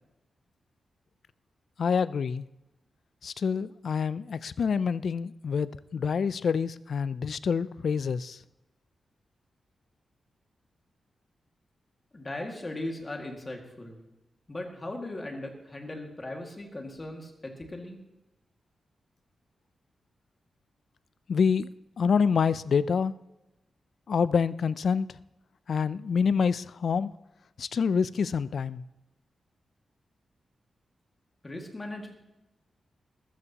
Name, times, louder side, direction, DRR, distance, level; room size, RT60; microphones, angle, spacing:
voice 1, 1.8-2.5 3.2-8.4 21.3-21.7 22.0-23.1 24.1-25.1 25.7-27.1 27.6-28.8, left 6 dB, 55° left, 17 dB, 0.4 m, -27 dB
voice 2, 12.1-14.0 14.5-18.0 31.4-32.1, left 1 dB, 20° left, 1 dB, 2.0 m, -38 dB
20.5 x 13.5 x 2.9 m, 0.97 s
wide cardioid pair, 165°, 0 cm